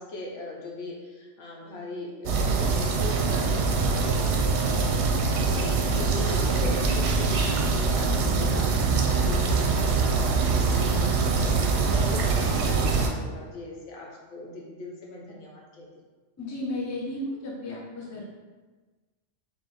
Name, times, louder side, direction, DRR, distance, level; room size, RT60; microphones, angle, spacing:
voice 1, 0.0-15.9, left 1 dB, 70° left, -2 dB, 1.1 m, -40 dB
sound 1, 2.3-13.1, right 4 dB, 70° right, 0.8 m, -24 dB
voice 2, 16.4-18.3, left 1 dB, 25° left, -3 dB, 0.4 m, -33 dB
3.3 x 3.0 x 3.8 m, 1.3 s
omnidirectional pair, 1.3 m